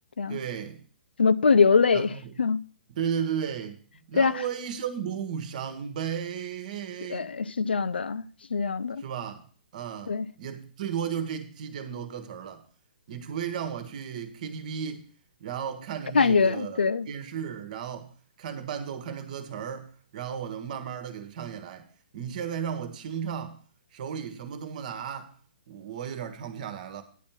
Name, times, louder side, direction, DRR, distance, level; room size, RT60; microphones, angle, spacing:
voice 1, 0.3-0.8 1.9-2.3 2.9-3.8 4.1-7.3 9.0-9.5 9.7-12.6 13.1-15.0 15.4-16.8 17.1-18.1 18.4-21.9 22.1-23.6 23.9-25.3 25.7-27.0, right 8 dB, 45° right, 1.4 m, -34 dB
voice 2, 1.2-2.1 2.4-2.6 4.1-4.4 7.1-9.0 10.1-10.3 16.1-17.1, left 5 dB, 70° left, 0.5 m, -23 dB
10.0 x 4.4 x 7.2 m
figure-of-eight pair, 125°, 6 cm